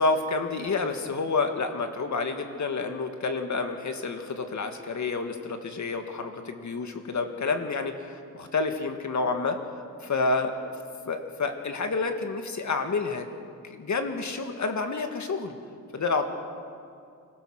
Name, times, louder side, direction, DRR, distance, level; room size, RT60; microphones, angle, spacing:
voice 1, 0.0-9.6 10.0-10.7 11.1-13.3 13.7-15.5 15.9-16.3, left 3 dB, 60° left, 6 dB, 1.9 m, -29 dB
25.5 x 17.0 x 6.4 m, 2.4 s
wide cardioid pair, 120°, 33 cm